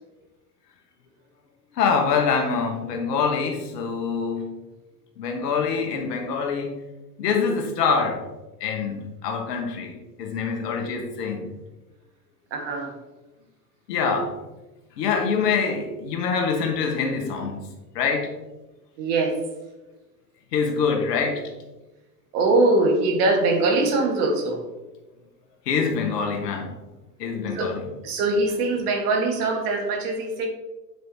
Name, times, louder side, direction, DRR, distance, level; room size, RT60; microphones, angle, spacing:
voice 1, 1.7-4.5 5.2-6.7 7.2-8.2 8.6-11.5 13.9-14.4 15.0-17.7 17.9-18.3 20.5-21.4 25.6-26.7 27.2-27.9, left 5 dB, 75° left, 3 dB, 1.4 m, -25 dB
voice 2, 12.5-12.9 19.0-19.4 22.3-24.6 27.5-27.7 28.0-30.5, right 2 dB, 65° right, 2 dB, 1.6 m, -22 dB
8.0 x 4.6 x 2.7 m, 1.1 s
hypercardioid pair, 85°, 49 cm